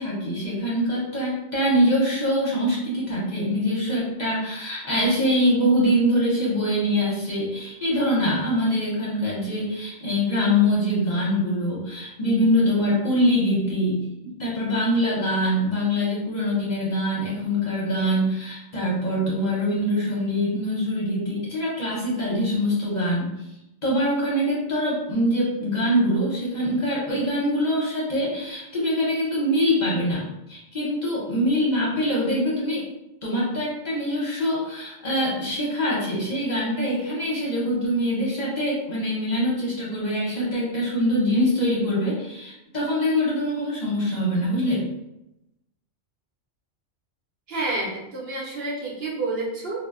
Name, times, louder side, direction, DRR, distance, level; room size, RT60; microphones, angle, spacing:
voice 1, 0.0-14.0 14.4-23.3 23.8-32.8 33.2-44.8, equal, 45° left, -6 dB, 0.7 m, -24 dB
voice 2, 47.5-49.9, right 2 dB, 60° right, -4 dB, 0.8 m, -29 dB
2.1 x 2.1 x 3.4 m, 0.88 s
omnidirectional pair, 1.2 m